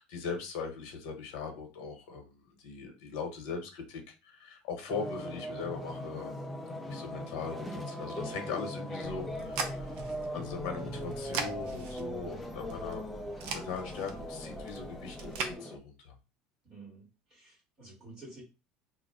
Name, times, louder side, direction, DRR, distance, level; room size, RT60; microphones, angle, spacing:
voice 1, 0.0-6.5 6.8-9.9 10.3-13.1 13.5-16.1, left 5 dB, 75° left, 4 dB, 0.8 m, -40 dB
sound 1, 4.9-15.8, left 1 dB, 5° left, 0.3 m, -40 dB
sound 2, 9.0-15.5, right 5 dB, 60° right, 0.5 m, -41 dB
voice 2, 16.6-18.4, right 2 dB, 25° right, -5 dB, 1.3 m, -51 dB
2.4 x 2.0 x 3.5 m, 0.30 s
cardioid pair, 170°, 3 cm